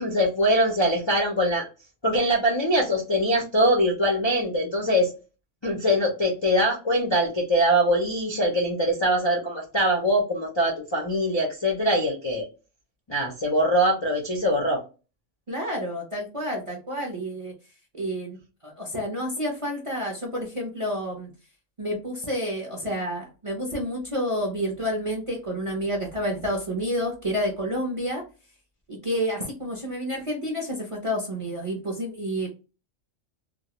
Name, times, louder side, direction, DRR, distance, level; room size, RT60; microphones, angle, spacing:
voice 1, 0.0-1.7 2.0-5.1 5.6-12.5 13.1-14.8, equal, 45° left, -1 dB, 0.3 m, -23 dB
voice 2, 15.5-17.5 17.9-18.4 18.6-21.3 21.8-28.2 28.9-32.5, equal, 40° right, -1 dB, 0.5 m, -29 dB
2.3 x 2.0 x 2.8 m, 0.32 s
omnidirectional pair, 1.3 m